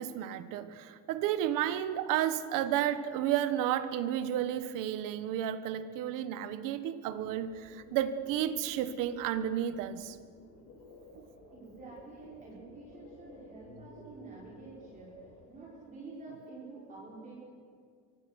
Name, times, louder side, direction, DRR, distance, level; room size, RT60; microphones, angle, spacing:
voice 1, 0.0-10.2 11.1-11.3, right 11 dB, 80° right, 11 dB, 1.5 m, -32 dB
sound 1, 7.2-15.5, left 2 dB, 65° left, 7.6 m, -56 dB
voice 2, 11.5-15.1 15.5-17.3, right 3 dB, 25° right, -5 dB, 4.9 m, -48 dB
25.0 x 24.0 x 6.5 m, 2.1 s
cardioid pair, 180°, 32 cm